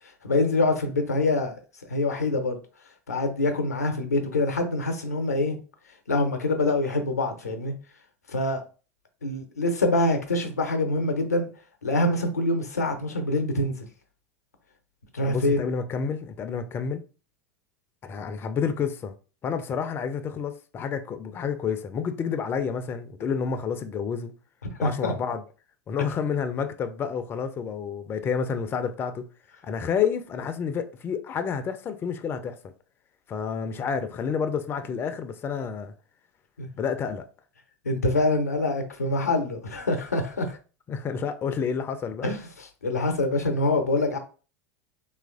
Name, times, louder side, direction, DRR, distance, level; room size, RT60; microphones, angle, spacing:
voice 1, 0.2-1.5 1.9-2.6 3.1-5.6 6.1-7.7 8.3-8.6 9.2-11.5 11.8-13.7 15.1-15.6 24.6-25.1 36.6-36.7 37.8-40.6 42.2-44.2, left 2 dB, 90° left, 0.6 m, -25 dB
voice 2, 15.2-17.0 18.0-19.1 19.4-24.3 24.8-25.4 25.9-29.2 29.6-32.7 33.3-35.9 36.8-37.2 40.9-42.3, left 6 dB, 25° left, 0.3 m, -29 dB
2.9 x 2.4 x 2.4 m
hypercardioid pair, 85°, 8 cm